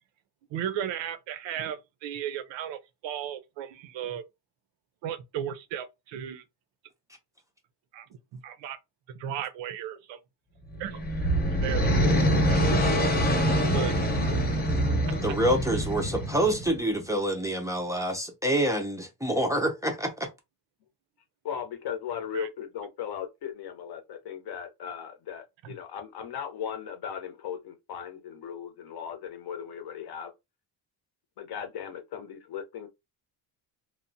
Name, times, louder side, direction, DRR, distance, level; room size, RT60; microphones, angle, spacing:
voice 1, 0.5-4.2 5.0-6.4 7.9-8.1 8.3-8.8 9.1-10.2 10.8-11.0 11.6-11.9 12.5-12.8 13.7-14.0 22.3-22.5, right 9 dB, 85° right, 0.6 m, -35 dB
sound 1, 10.7-16.8, equal, 20° left, 0.8 m, -25 dB
voice 2, 15.2-20.3, right 1 dB, 10° right, 0.3 m, -27 dB
voice 3, 21.4-30.3 31.4-32.9, left 8 dB, 60° left, 0.7 m, -37 dB
2.9 x 2.0 x 2.5 m
cardioid pair, 135°, 43 cm